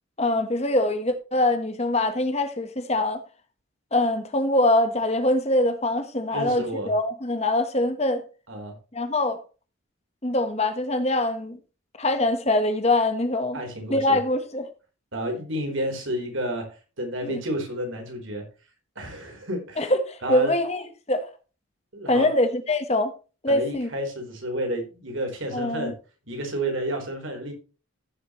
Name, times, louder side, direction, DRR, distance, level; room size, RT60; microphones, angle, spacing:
voice 1, 0.2-3.2 3.9-8.2 8.9-9.4 10.2-11.6 12.0-13.6 13.9-14.7 17.2-17.4 19.8-20.8 21.1-21.3 22.1-23.1 23.4-23.9 25.5-25.9, left 1 dB, 30° left, 1.2 m, -23 dB
voice 2, 6.3-6.9 8.5-8.8 13.5-14.2 15.1-18.4 19.0-19.9 20.2-20.5 21.9-22.3 23.5-25.9 26.3-27.5, right 1 dB, 65° right, 4.0 m, -30 dB
14.5 x 7.6 x 3.1 m
head